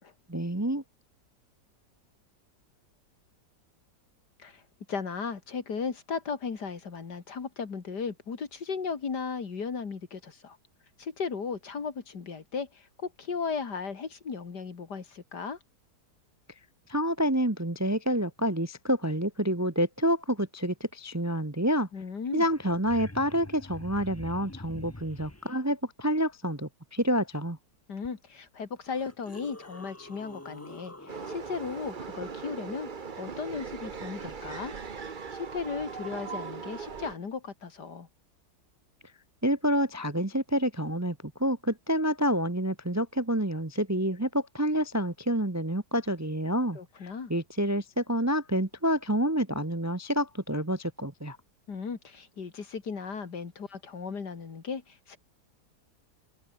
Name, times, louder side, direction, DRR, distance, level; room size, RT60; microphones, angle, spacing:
voice 1, 0.3-0.8 16.9-21.9 22.3-27.6 39.4-51.4, equal, 10° right, 0.9 m, -28 dB
voice 2, 4.9-10.6 11.0-15.6 21.9-22.4 27.9-32.9 33.2-34.7 35.0-38.1 46.7-47.3 51.7-55.2, left 5 dB, 70° left, 2.9 m, -36 dB
sound 1, 22.2-22.3 22.4-25.5 28.0-28.1 28.8-31.9 34.4-34.5, left 1 dB, 10° left, 1.1 m, -45 dB
sound 2, 31.1-37.2, right 5 dB, 30° right, 1.1 m, -39 dB
omnidirectional pair, 1.9 m